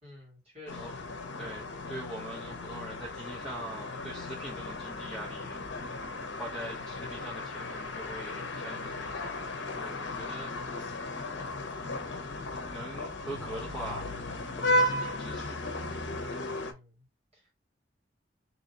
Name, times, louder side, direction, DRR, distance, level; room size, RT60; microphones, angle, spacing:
voice 1, 0.0-1.0 16.6-17.1 17.3-17.5, left 2 dB, 35° right, 1.9 m, -50 dB
sound 1, 0.7-16.7, left 1 dB, 70° left, 0.8 m, -35 dB
voice 2, 1.4-5.6 6.4-9.2 9.8-10.5 12.7-14.1 14.6-15.6, right 1 dB, ahead, 0.9 m, -42 dB
3.0 x 2.9 x 4.0 m
head